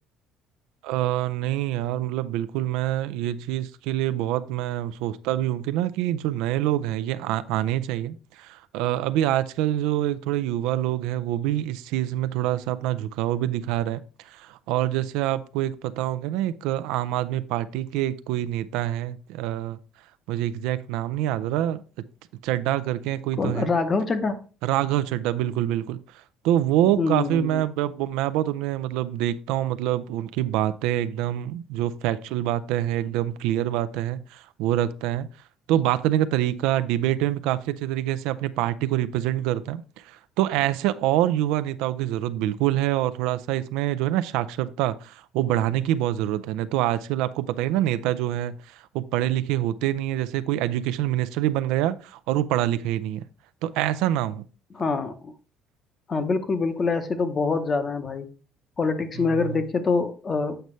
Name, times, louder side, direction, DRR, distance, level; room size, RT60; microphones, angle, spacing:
voice 1, 0.8-19.8 20.3-21.8 22.4-23.7 24.6-26.0 26.4-35.3 35.7-53.2 53.6-54.4 59.2-59.6, right 13 dB, 90° right, 0.4 m, -26 dB
voice 2, 23.4-24.4 27.0-27.6 54.7-55.3 56.1-58.3 58.8-60.6, left 4 dB, 25° left, 0.8 m, -25 dB
7.8 x 5.4 x 3.1 m
cardioid pair, 155°, 0 cm